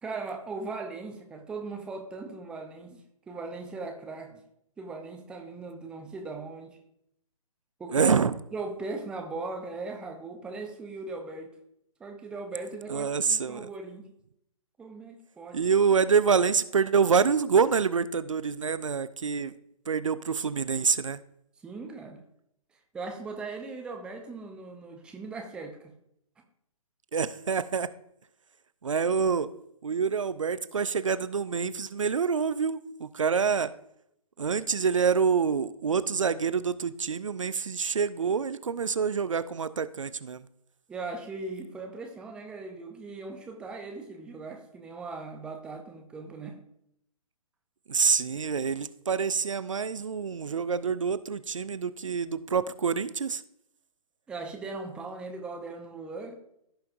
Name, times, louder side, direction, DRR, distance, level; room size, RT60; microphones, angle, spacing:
voice 1, 0.0-4.4 4.8-6.8 7.8-8.1 8.5-11.5 12.0-14.1 14.8-15.6 21.6-22.2 22.9-25.9 40.9-46.6 54.3-56.3, right 3 dB, 5° right, 4 dB, 0.6 m, -39 dB
voice 2, 7.9-8.3 12.9-13.7 15.5-19.5 19.9-21.2 27.1-27.9 28.8-29.5 29.8-33.7 34.4-40.5 47.9-53.4, right 6 dB, 60° right, 15 dB, 0.5 m, -26 dB
15.5 x 5.7 x 2.6 m, 0.75 s
figure-of-eight pair, 130°, 18 cm